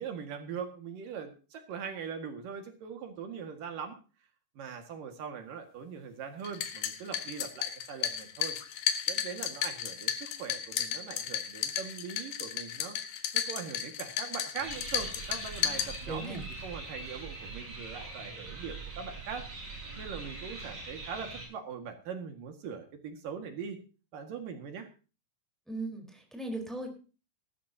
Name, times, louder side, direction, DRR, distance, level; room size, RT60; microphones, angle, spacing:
voice 1, 0.0-4.0 4.6-8.6 9.1-13.0 13.3-23.8 24.1-24.9, right 6 dB, 75° right, 6 dB, 3.5 m, -41 dB
sound 1, 6.4-16.4, left 10 dB, 80° left, 3.0 m, -34 dB
sound 2, 14.6-21.5, right 3 dB, 40° right, 8.5 m, -43 dB
voice 2, 16.1-16.4 25.7-26.9, right 2 dB, ahead, 3 dB, 3.7 m, -38 dB
18.5 x 13.5 x 2.8 m, 0.34 s
omnidirectional pair, 3.9 m